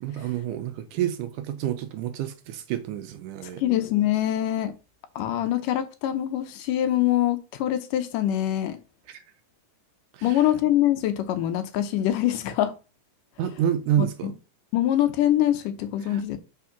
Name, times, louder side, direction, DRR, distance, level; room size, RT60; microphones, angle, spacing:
voice 1, 0.0-3.6 9.1-9.2 10.1-10.5 13.4-14.3 16.0-16.2, right 10 dB, 80° right, 2.0 m, -29 dB
voice 2, 3.6-4.7 5.2-8.8 10.2-12.7 14.0-14.3 14.7-16.4, left 12 dB, 75° left, 2.3 m, -24 dB
6.3 x 4.7 x 5.8 m
omnidirectional pair, 4.0 m